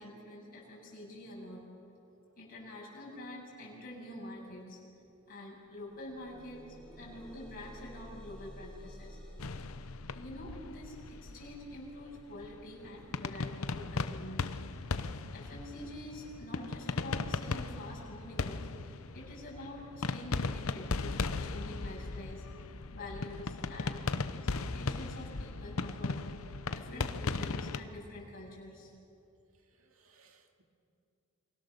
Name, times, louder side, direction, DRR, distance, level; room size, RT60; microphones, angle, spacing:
voice 1, 0.0-1.7 2.4-4.8 5.3-6.6 7.0-9.2 10.1-14.7 15.3-24.1 24.5-28.9, left 1 dB, 45° left, -4 dB, 7.9 m, -47 dB
sound 1, 5.1-5.2 5.4-16.4 17.2-17.3 17.8-17.9, equal, 5° left, 4.2 m, -53 dB
sound 2, 9.4-27.8, left 3 dB, 85° left, 0.8 m, -37 dB
voice 2, 29.7-30.6, right 4 dB, 75° right, 4 dB, 2.6 m, -67 dB
28.5 x 23.5 x 6.9 m, 2.6 s
head